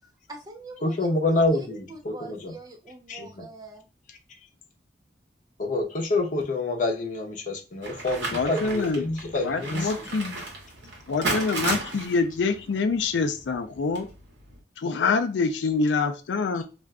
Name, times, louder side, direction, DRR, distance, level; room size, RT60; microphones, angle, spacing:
voice 1, 0.3-1.2 1.5-3.9, right 4 dB, 20° right, 4 dB, 0.5 m, -43 dB
voice 2, 0.8-2.5 3.1-3.5 5.6-10.1 16.5-16.6, left 2 dB, 45° left, 0 dB, 0.7 m, -27 dB
sound 1, 7.8-14.6, right 2 dB, 80° right, 1.0 m, -34 dB
voice 3, 8.3-9.1 9.4-10.4 11.1-14.1 14.8-16.6, left 4 dB, 80° left, 8 dB, 0.4 m, -26 dB
2.5 x 2.2 x 3.5 m, 0.32 s
head